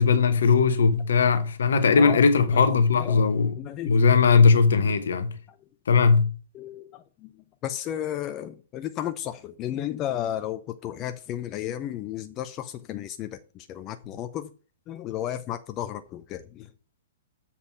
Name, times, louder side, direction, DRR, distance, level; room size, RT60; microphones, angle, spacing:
voice 1, 0.0-3.5 3.9-5.3 5.9-6.3, left 5 dB, 70° left, 1.1 m, -19 dB
voice 2, 1.9-2.2 2.5-2.7 3.0-3.2 3.6-4.1 4.8-5.0 6.5-7.3 7.6-14.5 14.9-16.7, left 11 dB, 30° left, 0.6 m, -33 dB
7.4 x 4.1 x 6.0 m
figure-of-eight pair, 115°, 0 cm